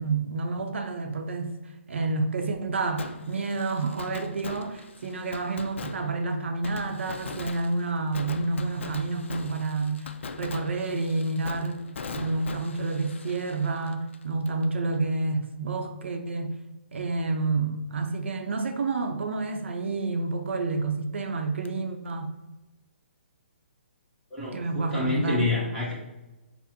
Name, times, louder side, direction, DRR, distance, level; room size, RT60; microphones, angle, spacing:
voice 1, 0.0-1.5 1.9-10.1 10.4-11.8 12.1-16.5 16.9-22.3 24.5-25.5, right 3 dB, 75° right, 5 dB, 0.6 m, -29 dB
Fireworks, 3.0-14.7 14.9-15.0 21.7-21.8, left 4 dB, 70° left, 0.3 m, -41 dB
voice 2, 24.3-25.9, left 2 dB, 5° left, -9 dB, 1.0 m, -28 dB
5.8 x 2.0 x 2.8 m, 1.1 s
hypercardioid pair, 145°, 7 cm